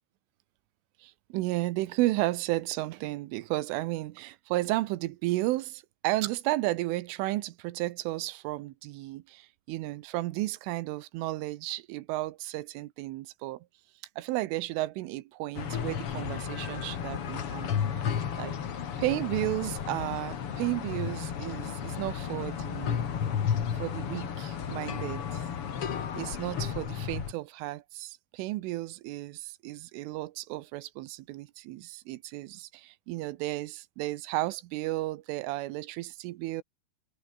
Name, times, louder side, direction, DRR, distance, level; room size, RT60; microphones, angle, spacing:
voice 1, 1.0-13.7 14.2-18.0 18.4-18.6 19.0-23.0 23.7-25.5 26.2-36.6, right 18 dB, 85° right, 3.5 m, -33 dB
sound 1, 15.5-27.3, left 8 dB, 65° left, 1.4 m, -33 dB
omnidirectional pair, 5.6 m